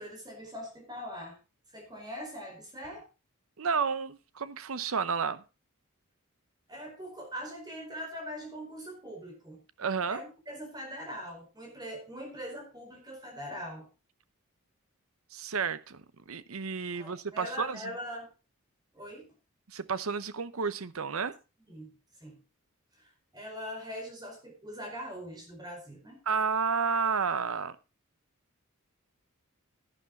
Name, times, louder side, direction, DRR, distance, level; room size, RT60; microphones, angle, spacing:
voice 1, 0.0-1.4 1.7-3.1 6.7-9.6 10.1-13.9 16.9-18.3 18.9-19.3 21.7-21.9 22.2-22.4 23.0-26.2, equal, 20° right, 4.8 m, -42 dB
voice 2, 3.6-5.4 9.8-10.2 15.3-17.9 19.7-21.4 26.3-27.8, right 5 dB, 75° right, 0.8 m, -31 dB
11.5 x 10.0 x 4.0 m
head